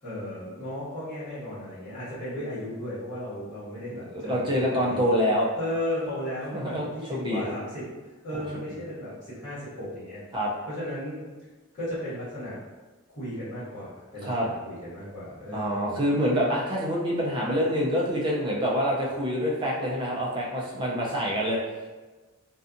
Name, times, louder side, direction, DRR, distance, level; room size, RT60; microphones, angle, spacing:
voice 1, 0.0-5.0 5.5-7.8 8.2-10.2 10.7-11.2 11.7-12.6 13.1-16.0, left 1 dB, 35° left, -18 dB, 1.3 m, -35 dB
voice 2, 3.9-5.5 6.5-7.4 8.7-8.8 10.3-10.5 14.2-14.5 15.5-21.6, equal, 20° right, -4 dB, 0.5 m, -26 dB
2.6 x 2.3 x 2.5 m, 1.3 s
head